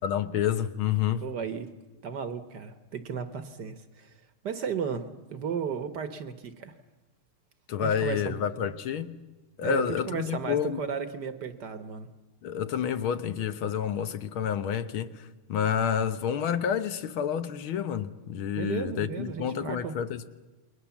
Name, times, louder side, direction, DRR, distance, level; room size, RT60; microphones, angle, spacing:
voice 1, 0.0-1.3 7.7-9.1 9.6-10.8 12.4-15.1 15.5-20.3, left 8 dB, 70° left, 1.8 m, -29 dB
voice 2, 1.2-1.7 2.0-4.1 4.4-6.7 7.8-8.4 9.6-12.1 18.5-20.0, right 6 dB, 55° right, 1.7 m, -34 dB
28.5 x 21.5 x 7.2 m
omnidirectional pair, 2.4 m